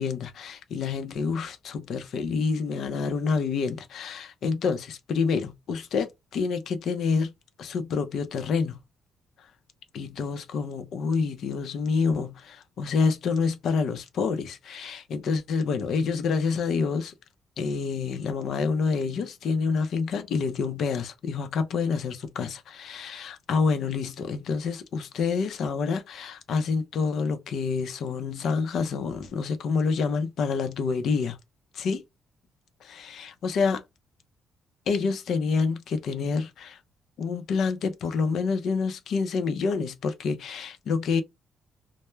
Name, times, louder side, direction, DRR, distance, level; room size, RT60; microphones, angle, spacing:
voice 1, 0.0-7.3 7.6-8.8 9.9-17.1 17.6-31.4 31.8-32.0 32.8-33.8 34.9-36.8 37.2-41.2, left 5 dB, 70° left, 0.6 m, -27 dB
2.2 x 2.1 x 3.1 m
cardioid pair, 90°, 0 cm